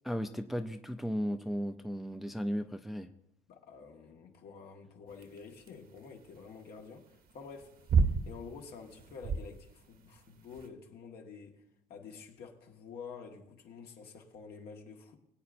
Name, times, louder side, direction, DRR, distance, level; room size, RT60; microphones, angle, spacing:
voice 1, 0.1-3.1, equal, ahead, 0.4 m, -35 dB
voice 2, 3.5-11.6 11.9-15.2, left 5 dB, 70° left, 1.6 m, -49 dB
sound 1, 5.1-10.7, right 5 dB, 60° right, 1.1 m, -32 dB
21.0 x 8.6 x 2.6 m
cardioid pair, 110°, 17 cm